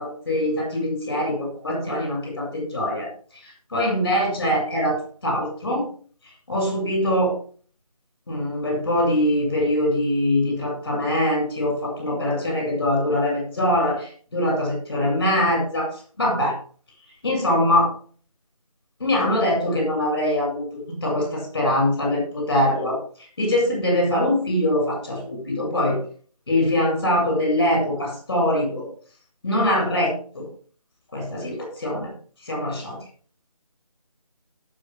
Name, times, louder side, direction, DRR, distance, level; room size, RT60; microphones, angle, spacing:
voice 1, 0.0-3.1 3.4-5.8 6.5-7.4 8.3-15.9 16.2-16.5 17.2-17.9 19.0-23.0 23.4-26.0 26.5-28.9 29.4-30.4 31.1-32.1 32.5-33.0, left 1 dB, 35° left, 1 dB, 7.3 m, -23 dB
19.0 x 6.8 x 3.6 m, 0.41 s
figure-of-eight pair, 175°, 20 cm